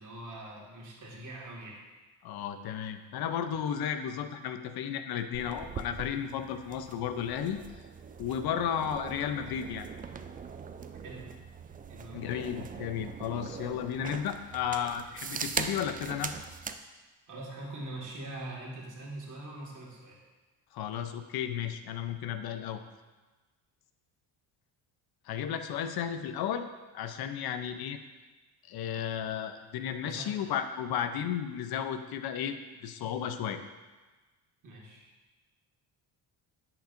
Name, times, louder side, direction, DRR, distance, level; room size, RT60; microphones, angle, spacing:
voice 1, 0.0-1.8 11.0-11.2 11.9-12.2 17.3-20.2 30.0-30.3 34.6-35.0, right 1 dB, 45° right, -3 dB, 2.0 m, -43 dB
voice 2, 2.2-7.6 8.2-9.9 12.1-16.3 20.7-22.8 25.3-26.7 26.9-28.0 28.7-33.6, left 9 dB, 65° left, 9 dB, 0.7 m, -33 dB
sound 1, 5.3-16.8, right 6 dB, 25° right, 0.3 m, -41 dB
10.0 x 5.9 x 2.6 m, 1.2 s
cardioid pair, 100°, 41 cm